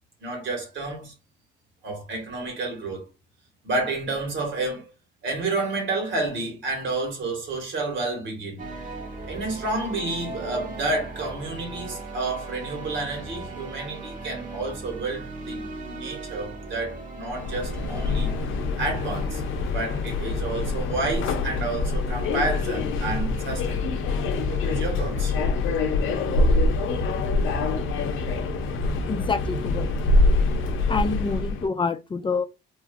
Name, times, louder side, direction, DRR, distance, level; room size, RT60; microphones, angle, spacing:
voice 1, 0.2-1.1 1.8-3.1 3.6-4.9 5.2-8.6 9.3-18.3 18.8-19.4 19.7-24.0 24.5-25.3, right 2 dB, 70° right, 1.7 m, -30 dB
sound 1, 8.6-23.7, right 3 dB, 40° right, 1.0 m, -39 dB
Subway metro underground, 17.3-31.7, left 3 dB, 85° left, 0.6 m, -25 dB
voice 2, 29.1-29.9 30.9-32.4, left 4 dB, 25° left, 0.4 m, -27 dB
3.0 x 2.4 x 2.5 m
cardioid pair, 90°, 20 cm